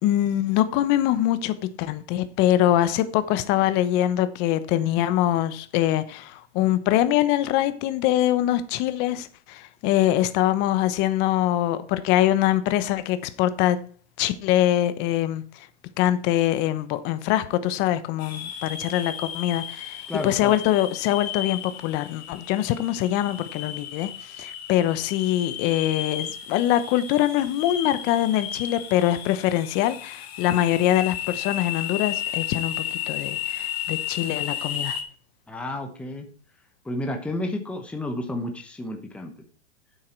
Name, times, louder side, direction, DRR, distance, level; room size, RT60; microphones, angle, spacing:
voice 1, 0.0-13.8 14.2-15.7 16.0-35.0, left 13 dB, 30° left, 0.9 m, -23 dB
sound 1, 18.2-35.0, left 10 dB, 60° left, 2.5 m, -34 dB
voice 2, 20.1-20.6 35.5-36.3 36.8-39.3, left 1 dB, 5° left, 1.1 m, -31 dB
9.2 x 8.1 x 4.5 m
hypercardioid pair, 145°, 36 cm